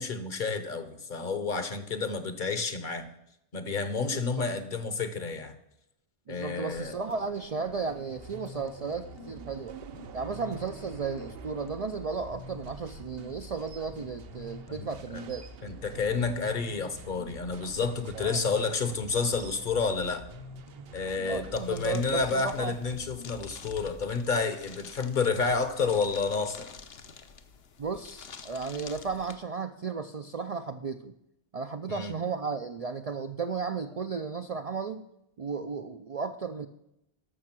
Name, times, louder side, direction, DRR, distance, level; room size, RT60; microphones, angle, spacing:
voice 1, 0.0-3.1 3.5-5.5 6.3-6.9 14.8-15.2 15.6-20.3 20.9-26.7 31.9-32.2, left 4 dB, 50° left, 10 dB, 1.0 m, -30 dB
voice 2, 4.1-4.4 6.3-9.8 10.1-15.4 18.1-18.4 20.7-20.9 21.3-22.8 27.8-31.2 31.5-35.0 35.4-36.7, right 5 dB, 50° right, 7 dB, 0.5 m, -34 dB
sound 1, 6.7-23.0, right 7 dB, 70° right, 0.9 m, -49 dB
sound 2, 8.2-24.2, left 3 dB, 35° left, 0.6 m, -48 dB
sound 3, 21.5-29.3, left 6 dB, 70° left, 1.1 m, -48 dB
12.5 x 6.5 x 6.0 m, 0.82 s
omnidirectional pair, 1.1 m